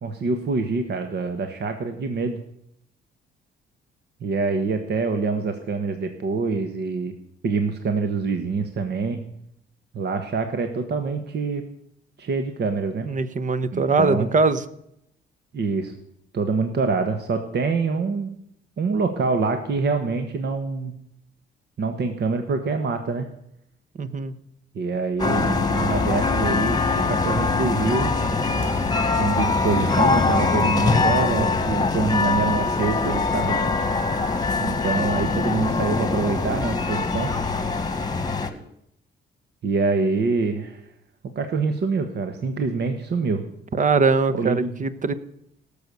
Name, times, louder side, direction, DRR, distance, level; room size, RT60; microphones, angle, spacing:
voice 1, 0.0-2.4 4.2-7.1 7.4-9.2 9.9-11.6 12.2-13.1 13.7-14.3 15.5-15.9 16.3-18.3 18.8-20.9 21.8-23.3 24.7-26.8 27.1-28.1 29.2-33.7 34.6-37.3 39.6-40.8 41.3-43.4 44.3-44.7, right 4 dB, 55° right, 7 dB, 1.3 m, -25 dB
voice 2, 13.0-14.6 24.0-24.3 43.7-45.1, right 4 dB, 40° right, 14 dB, 1.1 m, -21 dB
sound 1, 25.2-38.5, left 3 dB, 20° left, 1.6 m, -22 dB
18.0 x 6.9 x 6.9 m, 0.76 s
cardioid pair, 90°, 20 cm